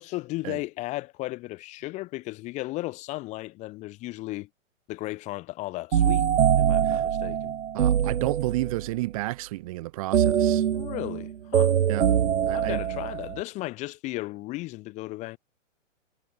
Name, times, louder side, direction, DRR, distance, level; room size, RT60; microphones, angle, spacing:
voice 1, 0.0-4.5 4.9-6.3 6.6-7.5 10.7-11.8 12.5-15.4, left 19 dB, 20° left, 6.2 m, -35 dB
sound 1, 5.9-8.9 10.1-13.4, right 9 dB, 70° right, 2.1 m, -23 dB
voice 2, 7.7-10.6 11.9-12.1 12.5-12.8, right 19 dB, 25° right, 3.1 m, -31 dB
hypercardioid pair, 175°, 38 cm